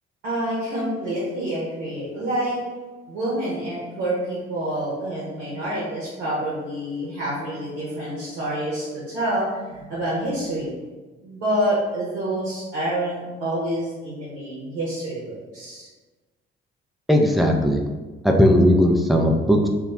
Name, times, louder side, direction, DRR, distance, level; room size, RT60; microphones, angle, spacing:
voice 1, 0.2-2.6 3.1-10.7 11.2-15.9, right 1 dB, 75° right, -7 dB, 0.7 m, -27 dB
voice 2, 17.1-17.8 18.2-19.7, equal, ahead, 2 dB, 0.3 m, -17 dB
2.3 x 2.0 x 3.5 m, 1.3 s
figure-of-eight pair, 45°, 31 cm